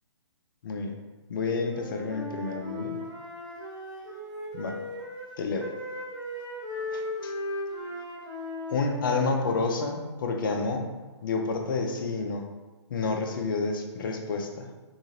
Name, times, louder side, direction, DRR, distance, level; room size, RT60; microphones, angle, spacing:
voice 1, 1.3-3.0 4.5-4.7 5.4-5.7 6.9-7.3 8.7-10.9 11.2-12.5 12.9-14.7, left 4 dB, 45° left, 3 dB, 0.5 m, -29 dB
Wind instrument woodwind instrument, 1.6-5.3 5.6-9.9, left 1 dB, 20° right, 1.3 m, -37 dB
3.6 x 2.4 x 2.8 m, 1.2 s
figure-of-eight pair, 130°, 15 cm